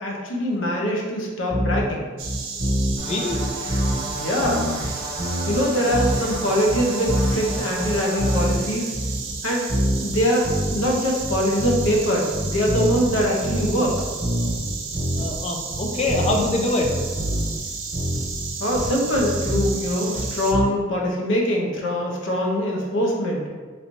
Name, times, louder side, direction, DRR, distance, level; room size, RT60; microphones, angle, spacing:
voice 1, 0.0-2.0 4.2-4.6 5.5-8.9 9.4-9.7 10.0-14.0 18.6-23.4, equal, 75° left, -1 dB, 0.7 m, -23 dB
sound 1, 1.5-1.9 2.2-3.0 3.3-4.1 4.4-5.6 5.9-6.4 6.7-8.7 8.9-9.4 9.7-10.9 11.2-12.0 12.3-15.4 15.7-16.5 16.8-17.6 17.9-20.6, equal, 65° right, 1.1 m, -25 dB
Insect, 2.2-20.5, right 5 dB, 85° right, 0.5 m, -33 dB
voice 2, 3.0-3.4 15.1-16.9, left 2 dB, 35° left, 1 dB, 0.4 m, -24 dB
sound 2, 3.0-8.5, right 1 dB, 25° right, 0.5 m, -34 dB
3.2 x 3.0 x 2.6 m, 1.5 s
head